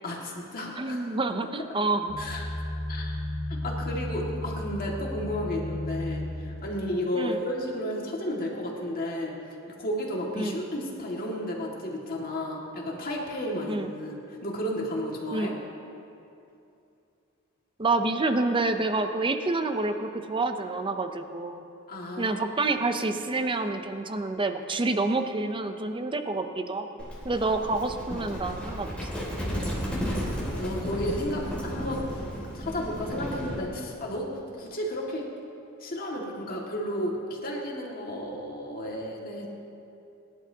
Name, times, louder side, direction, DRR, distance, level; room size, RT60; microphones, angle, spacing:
voice 1, 0.0-1.1 2.2-2.5 2.9-3.2 3.5-9.3 9.8-15.5 21.9-22.4 29.9-32.2 32.5-34.3 34.5-35.3 35.8-39.5, left 1 dB, 45° left, -2 dB, 2.0 m, -33 dB
voice 2, 0.8-2.1 7.1-7.4 10.3-10.6 13.7-13.9 15.3-15.6 17.8-21.6 22.2-29.1, right 3 dB, 25° right, 7 dB, 0.6 m, -28 dB
sound 1, 2.1-6.3, left 1 dB, 65° left, 2.7 m, -33 dB
Livestock farm animals working animals, 27.0-33.7, equal, 5° left, 2.6 m, -33 dB
22.5 x 11.0 x 2.9 m, 2.6 s
head